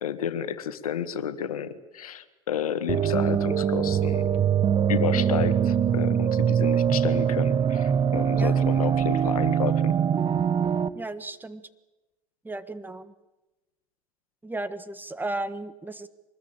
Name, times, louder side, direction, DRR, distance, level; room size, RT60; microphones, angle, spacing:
voice 1, 0.0-4.3 4.9-9.9, left 9 dB, 75° left, 12 dB, 1.6 m, -31 dB
sound 1, 2.9-10.9, right 8 dB, 30° right, 1.3 m, -23 dB
voice 2, 10.9-11.6 12.4-13.1 14.4-16.1, right 2 dB, 10° right, 12 dB, 1.5 m, -34 dB
24.0 x 20.5 x 9.0 m, 1.1 s
figure-of-eight pair, 80°, 18 cm